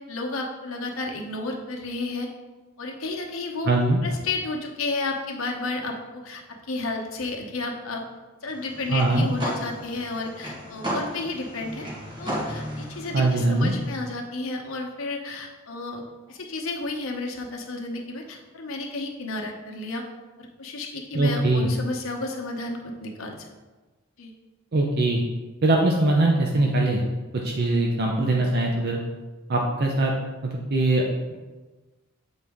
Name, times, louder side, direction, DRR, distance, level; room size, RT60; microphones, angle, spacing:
voice 1, 0.1-2.3 2.8-3.7 4.0-8.1 8.4-11.9 12.2-20.0 20.4-23.5 24.2-24.3, left 3 dB, 75° left, 1 dB, 0.9 m, -32 dB
voice 2, 3.7-4.0 8.9-9.3 13.1-13.7 21.1-21.7 24.7-25.2 25.6-27.0 27.4-29.0 29.5-30.1 30.4-31.0, right 2 dB, 50° right, 0 dB, 0.6 m, -22 dB
sound 1, 8.5-14.0, equal, 20° right, 1.3 m, -34 dB
7.3 x 4.0 x 3.6 m, 1.2 s
head